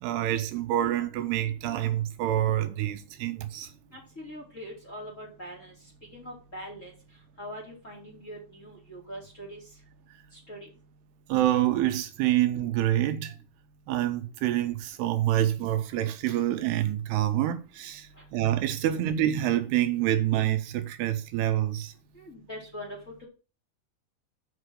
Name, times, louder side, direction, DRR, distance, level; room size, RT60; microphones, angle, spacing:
voice 1, 0.0-3.7 11.3-13.4 13.9-21.9, right 12 dB, 80° right, 2.6 m, -27 dB
voice 2, 3.9-5.7 6.1-6.9 7.4-9.6 10.3-10.7 18.2-18.3 22.1-23.2, equal, 25° left, 2.3 m, -42 dB
7.4 x 6.0 x 6.4 m
omnidirectional pair, 4.8 m